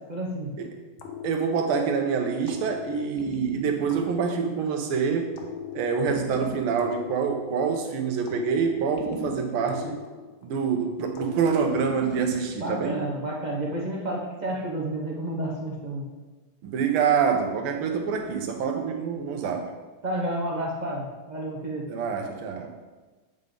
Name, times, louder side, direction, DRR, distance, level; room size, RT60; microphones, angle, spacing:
voice 1, 0.1-0.5 12.6-16.1 20.0-21.9, right 1 dB, 45° right, -3 dB, 0.5 m, -30 dB
sound 1, 1.0-2.0 2.5-4.9 5.4-7.8 8.3-10.7 11.1-12.6, left 7 dB, 75° left, 1.6 m, -39 dB
voice 2, 1.2-5.3 5.7-10.0 10.4-13.0 16.6-19.7 21.9-22.7, right 6 dB, 80° right, 4 dB, 1.7 m, -26 dB
8.0 x 5.2 x 3.8 m, 1.3 s
omnidirectional pair, 2.4 m